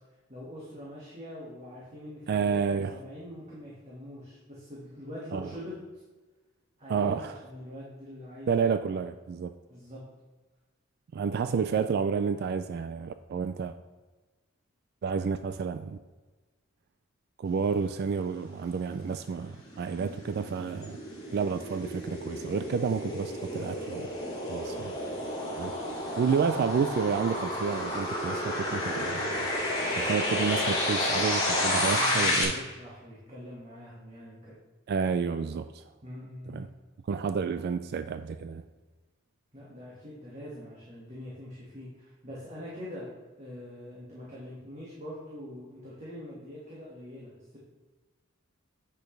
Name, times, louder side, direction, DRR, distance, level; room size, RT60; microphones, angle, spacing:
voice 1, 0.3-5.8 6.8-8.7 9.7-10.0 20.0-20.2 31.8-34.6 36.0-36.7 39.5-43.1 43.4-47.6, left 1 dB, 35° right, -7 dB, 1.8 m, -43 dB
voice 2, 2.3-3.0 5.3-5.5 6.9-7.3 8.5-9.5 11.1-13.8 15.0-16.0 17.4-21.0 21.3-24.1 24.5-24.9 25.6-25.7 26.2-29.5 29.9-32.6 34.9-35.8 36.5-36.7 37.1-38.6, right 6 dB, 50° right, 10 dB, 0.3 m, -30 dB
sound 1, 19.2-32.4, left 1 dB, 20° left, 2.1 m, -31 dB
9.1 x 6.1 x 3.3 m, 1.3 s
head